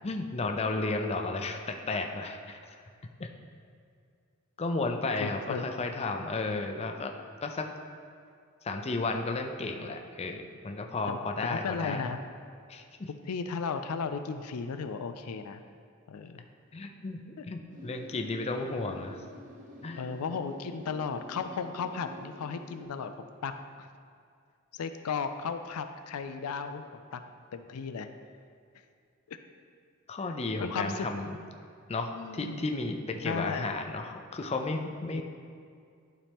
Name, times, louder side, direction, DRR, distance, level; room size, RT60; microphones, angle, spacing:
voice 1, 0.0-2.6 3.2-3.3 4.6-7.1 7.4-7.7 8.6-12.1 12.7-13.1 16.7-19.2 19.8-20.1 30.1-31.4 31.9-35.2, left 3 dB, 30° left, 4 dB, 0.5 m, -33 dB
voice 2, 5.2-5.7 6.4-6.7 11.1-12.2 13.2-15.6 16.1-16.4 17.4-17.5 18.8-18.9 20.0-23.9 24.7-27.2 27.5-28.1 29.3-29.4 30.6-31.3 32.1-32.6 33.2-33.7 35.1-35.2, left 5 dB, 90° left, 8 dB, 0.4 m, -35 dB
sound 1, 17.7-22.8, left 1 dB, 35° right, 1.0 m, -48 dB
11.5 x 4.2 x 3.5 m, 2.3 s
head